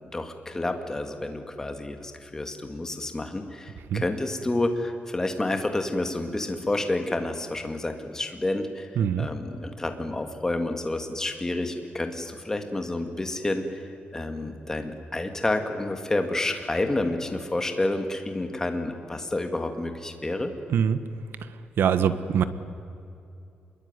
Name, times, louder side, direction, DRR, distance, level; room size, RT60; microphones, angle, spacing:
voice 1, 0.1-8.9 9.2-13.8 14.1-20.5, left 2 dB, 15° left, 6 dB, 2.2 m, -29 dB
voice 2, 9.0-9.3 20.7-21.0 21.8-22.4, right 8 dB, 75° right, 12 dB, 1.4 m, -23 dB
26.5 x 22.0 x 9.7 m, 2.7 s
wide cardioid pair, 170°, 4 cm